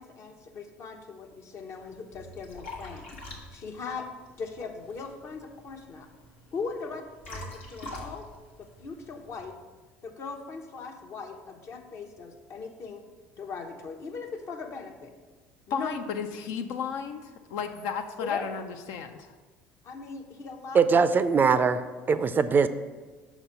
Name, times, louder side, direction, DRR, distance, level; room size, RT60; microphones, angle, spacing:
voice 1, 0.0-3.0 3.5-4.1 4.4-6.1 6.5-8.3 8.6-9.5 10.0-13.0 13.4-15.1 15.7-15.9 18.2-18.5 19.8-21.0, left 5 dB, 50° left, 4 dB, 0.8 m, -39 dB
Liquid, 1.7-9.5, left 1 dB, 85° left, 1.1 m, -45 dB
voice 2, 15.7-19.3, left 6 dB, 70° left, 7 dB, 0.4 m, -34 dB
voice 3, 20.7-21.8 22.1-22.7, right 5 dB, 30° right, 13 dB, 0.4 m, -21 dB
5.9 x 4.1 x 5.6 m, 1.3 s
hypercardioid pair, 70°, 6 cm